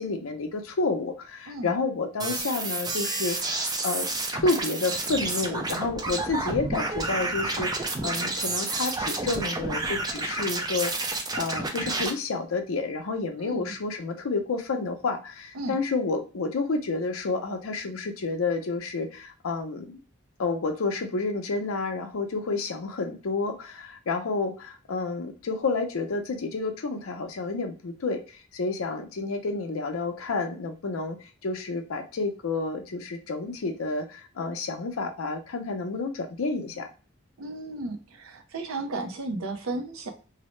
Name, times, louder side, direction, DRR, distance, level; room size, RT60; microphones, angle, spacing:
voice 1, 0.0-4.1 4.3-19.9 20.4-36.9, left 3 dB, 90° left, 5 dB, 0.5 m, -30 dB
sound 1, 2.2-12.1, right 2 dB, 20° right, 0.4 m, -30 dB
voice 2, 13.4-13.7 15.5-15.8 37.4-40.1, right 2 dB, 90° right, 5 dB, 0.6 m, -34 dB
2.6 x 2.1 x 3.0 m, 0.37 s
head